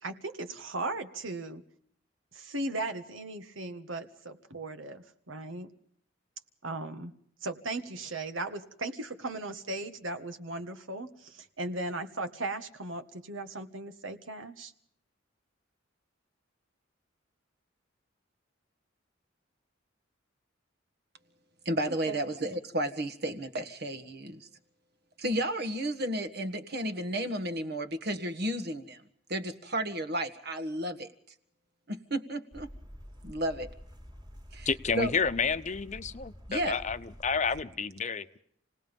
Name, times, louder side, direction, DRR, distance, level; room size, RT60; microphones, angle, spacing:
voice 1, 0.0-1.6 2.3-5.7 6.6-7.1 7.4-14.7 21.9-22.2, right 2 dB, 85° right, 8 dB, 1.7 m, -37 dB
voice 2, 21.6-24.5 25.2-29.0 29.3-31.1 31.9-32.7 33.2-33.7 34.5-34.7 35.0-35.1 36.5-36.8, right 1 dB, 55° right, 11 dB, 1.7 m, -32 dB
sound 1, 32.5-37.6, equal, 20° right, 2.2 m, -48 dB
voice 3, 34.7-36.1 36.5-38.4, left 5 dB, 40° left, 11 dB, 0.8 m, -30 dB
28.5 x 19.0 x 5.4 m, 0.67 s
head